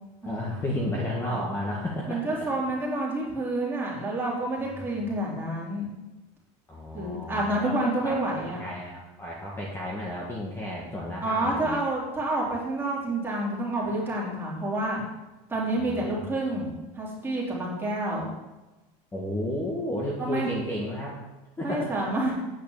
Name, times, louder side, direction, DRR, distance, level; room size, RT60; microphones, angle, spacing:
voice 1, 0.2-2.5 4.6-4.7 5.0-5.1 6.7-11.8 15.7-16.8 19.1-21.2 21.6-22.1, left 1 dB, 15° left, -4 dB, 1.7 m, -33 dB
voice 2, 2.1-5.9 6.9-8.6 11.2-15.0 15.5-16.7 16.9-18.3 20.2-20.5 21.6-22.3, right 1 dB, 15° right, -5 dB, 3.4 m, -28 dB
9.3 x 5.7 x 7.1 m, 1.1 s
cardioid pair, 150°, 17 cm